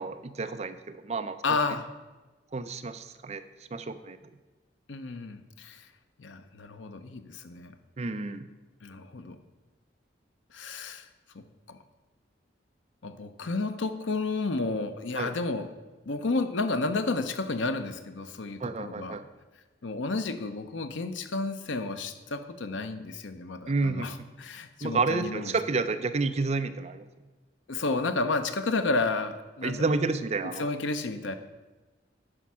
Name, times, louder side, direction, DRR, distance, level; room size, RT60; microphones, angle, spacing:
voice 1, 0.0-1.4 2.5-3.4 3.7-4.2 8.0-8.5 15.2-15.3 18.6-19.3 23.7-24.1 24.8-27.0 29.6-30.7, right 3 dB, 35° right, 10 dB, 0.5 m, -30 dB
voice 2, 1.4-1.9 4.9-5.8 6.2-7.7 8.8-9.4 10.5-11.1 11.3-11.4 11.7-11.8 13.0-15.7 16.1-19.2 19.8-25.5 27.7-29.9 30.6-31.3, left 3 dB, 90° left, 9 dB, 0.7 m, -31 dB
9.9 x 5.6 x 6.1 m, 1.2 s
head